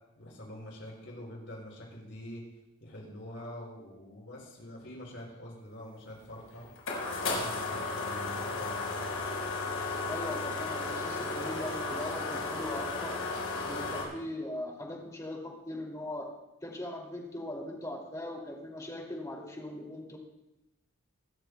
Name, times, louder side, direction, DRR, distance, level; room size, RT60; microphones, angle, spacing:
voice 1, 0.2-2.4 2.8-6.7 7.1-9.1, left 1 dB, 60° left, -2 dB, 5.2 m, -45 dB
sound 1, 6.1-14.0, left 3 dB, 85° left, 4.6 m, -34 dB
voice 2, 10.1-13.2 13.6-16.3 16.6-20.2, left 1 dB, 15° left, 0 dB, 2.4 m, -40 dB
25.5 x 13.5 x 2.2 m, 0.94 s
head